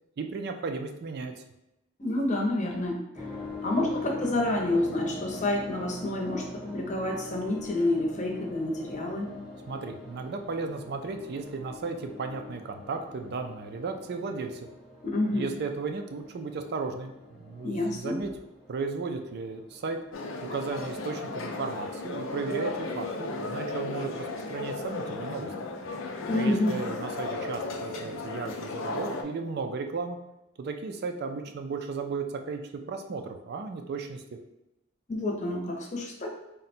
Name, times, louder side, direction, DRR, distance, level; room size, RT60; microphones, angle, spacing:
voice 1, 0.2-1.4 9.7-14.7 15.3-18.3 18.7-20.0 20.5-25.5 26.3-30.2 30.6-34.2, right 4 dB, 55° right, 6 dB, 0.4 m, -35 dB
voice 2, 2.0-9.3 15.0-15.4 17.6-18.2 26.3-26.8 35.1-36.3, left 1 dB, 40° left, 1 dB, 0.7 m, -29 dB
sound 1, 3.2-22.8, left 3 dB, 5° right, 0.7 m, -44 dB
sound 2, 20.1-29.2, left 2 dB, 85° left, 0.5 m, -35 dB
3.8 x 2.1 x 4.2 m, 0.92 s
head